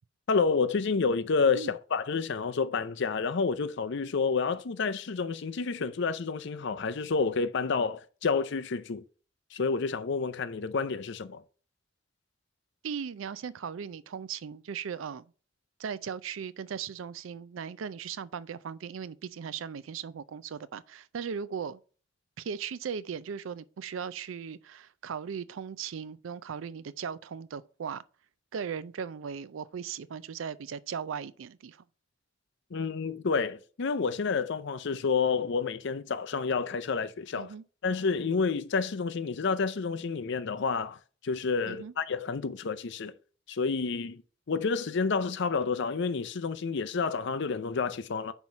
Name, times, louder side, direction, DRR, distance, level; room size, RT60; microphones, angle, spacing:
voice 1, 0.3-9.0 9.5-11.4 32.7-37.5 37.8-41.0 41.2-43.1 43.5-44.2 44.5-48.3, left 5 dB, 65° left, 0.6 m, -29 dB
voice 2, 12.8-15.3 15.8-21.8 22.4-28.0 28.5-31.8 37.4-37.6 41.7-41.9, right 7 dB, 85° right, 0.4 m, -38 dB
5.6 x 4.5 x 5.2 m
head